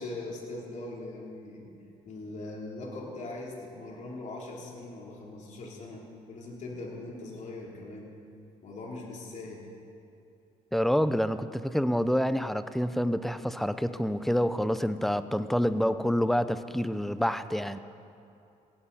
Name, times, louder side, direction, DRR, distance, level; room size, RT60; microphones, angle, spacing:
voice 1, 0.0-1.7 2.0-8.1 8.6-9.7, left 2 dB, 55° left, -2 dB, 3.3 m, -41 dB
voice 2, 10.7-17.8, equal, ahead, 12 dB, 0.7 m, -27 dB
18.0 x 17.0 x 4.2 m, 2.7 s
cardioid pair, 95°, 15 cm